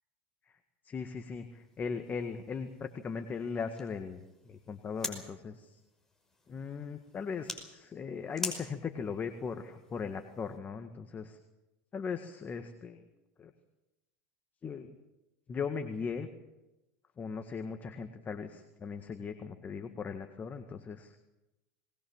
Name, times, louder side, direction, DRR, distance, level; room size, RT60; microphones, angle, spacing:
voice 1, 0.8-5.8 6.5-11.4 11.9-13.0 13.4-13.5 14.6-15.0 15.5-16.3 17.2-21.2, left 5 dB, 30° left, 7 dB, 1.8 m, -38 dB
sound 1, 1.2-10.6, left 2 dB, 5° left, 5.5 m, -47 dB
21.0 x 20.5 x 7.3 m, 0.98 s
hypercardioid pair, 95°, 6 cm